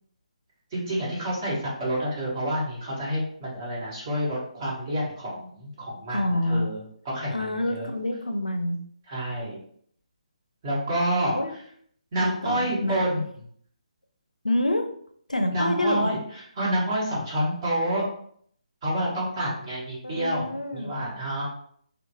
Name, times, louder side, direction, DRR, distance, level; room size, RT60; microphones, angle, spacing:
voice 1, 0.7-7.9 9.1-9.6 10.6-11.6 12.1-13.2 15.5-18.0 18.8-21.5, right 1 dB, 30° right, -6 dB, 1.2 m, -28 dB
voice 2, 6.1-6.7 7.3-8.8 11.3-11.5 12.2-13.0 14.4-14.9 15.3-16.2 20.0-20.9, left 1 dB, 85° left, 6 dB, 0.4 m, -27 dB
3.0 x 2.0 x 2.8 m, 0.62 s
figure-of-eight pair, 145°, 4 cm